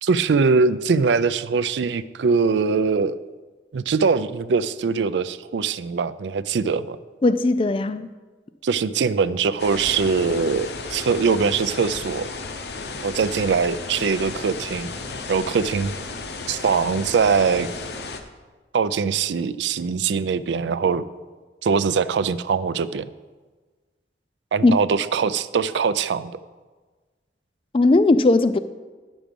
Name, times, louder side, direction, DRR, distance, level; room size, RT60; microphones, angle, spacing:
voice 1, 0.0-3.2 3.7-7.0 8.6-12.3 13.0-14.9 15.3-15.9 16.5-17.7 18.7-21.0 21.6-23.0 24.5-26.3, right 5 dB, 85° right, 0.4 m, -22 dB
voice 2, 7.2-8.1 24.6-24.7 27.7-28.6, left 2 dB, 30° left, 0.3 m, -17 dB
sound 1, 9.6-18.2, left 3 dB, 70° left, 0.8 m, -34 dB
10.0 x 6.2 x 5.2 m
head